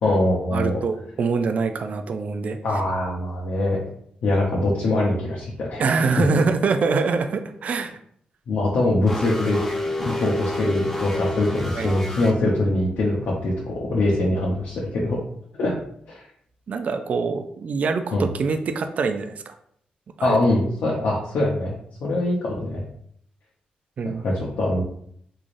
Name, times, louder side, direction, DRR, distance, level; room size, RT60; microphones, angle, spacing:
voice 1, 0.0-0.8 2.6-3.8 4.2-5.8 6.1-6.2 8.5-9.6 10.0-15.2 15.5-15.8 16.1-16.2 18.1-18.3 20.2-22.8 24.2-24.8, left 2 dB, 80° left, -4 dB, 0.7 m, -23 dB
voice 2, 0.5-2.6 5.8-8.0 11.8-11.9 16.7-19.5 20.2-20.4 24.0-24.2, right 4 dB, 55° right, 7 dB, 0.3 m, -24 dB
sound 1, 9.1-12.3, left 1 dB, 10° left, 0.7 m, -29 dB
3.8 x 3.2 x 2.5 m, 0.66 s
cardioid pair, 110°, 3 cm